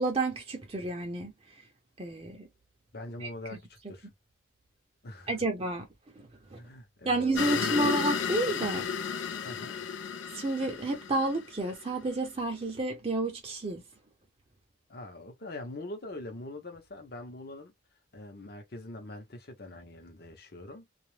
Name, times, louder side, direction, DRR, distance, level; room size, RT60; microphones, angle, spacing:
voice 1, 0.0-1.3 2.0-2.5 3.2-3.6 5.3-5.9 6.2-6.6 7.0-8.9 10.3-13.8, right 2 dB, 30° right, 0.5 m, -30 dB
voice 2, 2.9-4.1 5.0-5.4 6.6-7.9 9.4-9.8 14.9-17.7 18.1-20.9, left 1 dB, 55° left, 0.8 m, -43 dB
sound 1, 7.3-11.9, left 7 dB, 75° left, 0.4 m, -33 dB
2.4 x 2.0 x 3.1 m
head